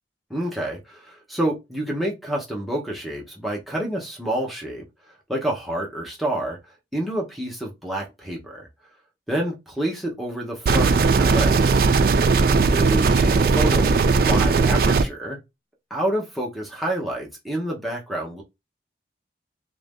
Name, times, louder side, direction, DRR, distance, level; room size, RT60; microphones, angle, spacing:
voice 1, 0.3-4.8 5.3-6.6 6.9-8.7 9.3-11.8 12.7-15.4 15.9-18.4, right 1 dB, ahead, 0.9 m, -28 dB
sound 1, 10.7-15.0, right 4 dB, 55° right, 0.3 m, -18 dB
3.0 x 2.7 x 3.5 m
head